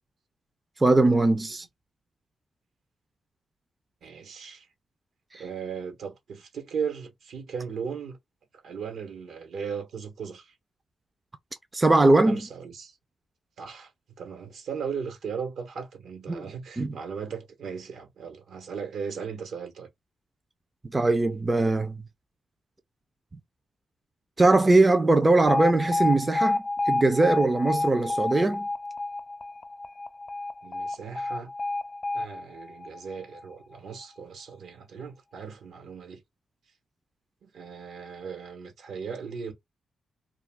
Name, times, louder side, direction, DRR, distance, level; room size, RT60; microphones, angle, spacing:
voice 1, 0.8-1.7 5.3-5.4 11.7-12.4 16.3-16.4 16.8-16.9 20.8-22.0 24.4-28.7, right 2 dB, 25° right, 0.4 m, -21 dB
voice 2, 4.0-4.7 5.4-8.2 8.6-10.5 12.2-12.9 13.6-13.9 14.2-19.9 30.6-31.5 32.1-36.2 37.4-39.5, right 6 dB, 80° right, 1.1 m, -37 dB
Alarm, 25.5-33.5, left 2 dB, 40° left, 0.4 m, -29 dB
2.4 x 2.3 x 3.4 m
cardioid pair, 75°, 0 cm